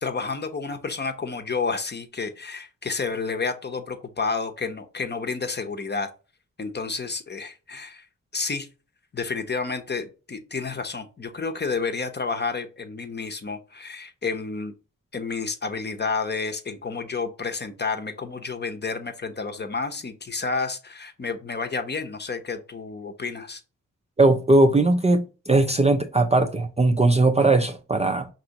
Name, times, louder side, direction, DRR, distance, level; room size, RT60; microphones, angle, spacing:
voice 1, 0.0-6.1 6.6-8.1 8.3-8.7 9.1-14.7 15.1-23.6, left 4 dB, 35° left, 0.8 m, -30 dB
voice 2, 24.2-28.3, right 2 dB, 20° right, 0.4 m, -19 dB
5.2 x 2.9 x 2.9 m
cardioid pair, 80°, 31 cm